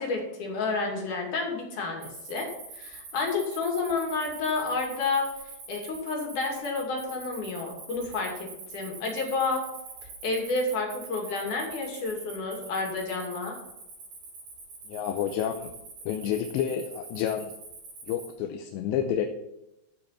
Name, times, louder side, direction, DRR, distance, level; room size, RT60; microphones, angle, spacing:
voice 1, 0.0-2.5 2.7-9.7 10.2-13.6, left 3 dB, 50° left, 0 dB, 3.6 m, -30 dB
Cricket, 2.0-18.3, right 4 dB, 70° right, 7.5 m, -44 dB
voice 2, 14.9-15.7 16.1-17.5 18.1-19.3, left 9 dB, 85° left, 5 dB, 3.0 m, -29 dB
15.0 x 5.6 x 5.8 m, 0.91 s
omnidirectional pair, 5.0 m